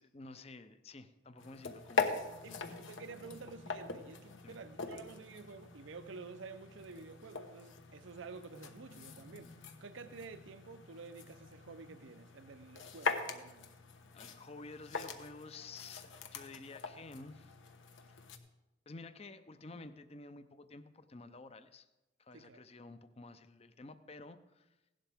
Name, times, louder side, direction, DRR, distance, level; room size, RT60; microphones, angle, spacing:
voice 1, 0.0-2.1 2.5-2.8 4.4-4.6 14.1-17.5 18.1-18.2 18.9-21.9 22.2-24.7, left 3 dB, 30° left, 0.6 m, -51 dB
sound 1, 1.4-18.4, left 4 dB, 75° left, 1.1 m, -42 dB
voice 2, 2.4-13.7 22.3-22.6, right 4 dB, 75° right, 0.6 m, -50 dB
16.5 x 11.5 x 3.5 m
head